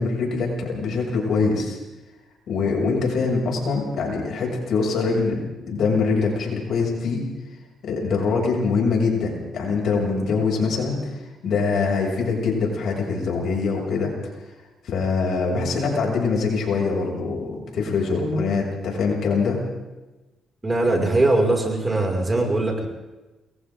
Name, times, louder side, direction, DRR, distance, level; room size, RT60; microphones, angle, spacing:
voice 1, 0.0-1.8 2.5-5.4 5.7-7.2 7.8-14.1 14.8-19.6, left 4 dB, 65° left, -1 dB, 7.4 m, -23 dB
voice 2, 20.6-22.9, right 2 dB, 20° right, 1 dB, 6.0 m, -21 dB
29.5 x 22.5 x 3.9 m, 1.1 s
cardioid pair, 90°, 0 cm